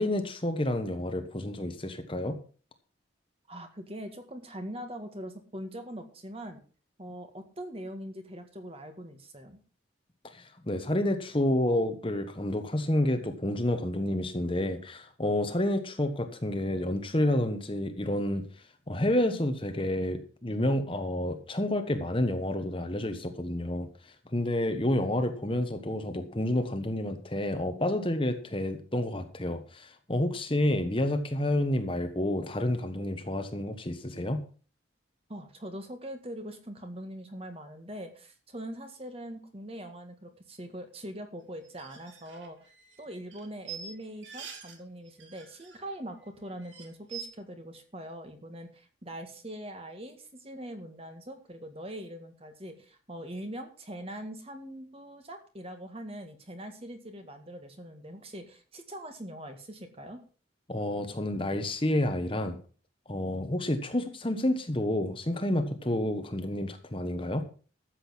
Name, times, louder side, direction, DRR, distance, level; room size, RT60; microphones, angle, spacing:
voice 1, 0.0-2.4 10.2-18.4 18.9-23.9 24.3-34.4 60.7-62.6 63.1-67.4, left 1 dB, 25° left, 7 dB, 1.3 m, -29 dB
voice 2, 3.5-6.6 7.0-9.6 35.3-42.7 43.0-60.2, equal, 30° right, 6 dB, 1.8 m, -42 dB
sound 1, 41.6-44.8 45.1-46.0 46.2-46.3 46.6-47.2, right 7 dB, 75° right, 3.0 m, -45 dB
13.0 x 7.8 x 6.0 m, 0.38 s
head